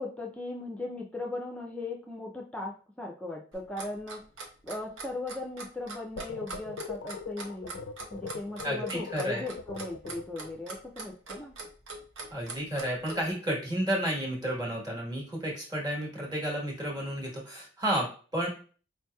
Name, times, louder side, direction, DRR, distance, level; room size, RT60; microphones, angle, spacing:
voice 1, 0.0-4.2 4.6-7.8 8.1-11.6, left 2 dB, 5° left, -1 dB, 0.4 m, -38 dB
Clock, 3.5-13.2, right 3 dB, 85° right, 0.8 m, -42 dB
sound 1, 6.2-10.6, left 5 dB, 85° left, 0.4 m, -40 dB
voice 2, 8.6-9.4 12.3-18.1 18.3-18.5, right 1 dB, 20° right, -3 dB, 1.2 m, -31 dB
4.5 x 2.8 x 2.2 m, 0.39 s
head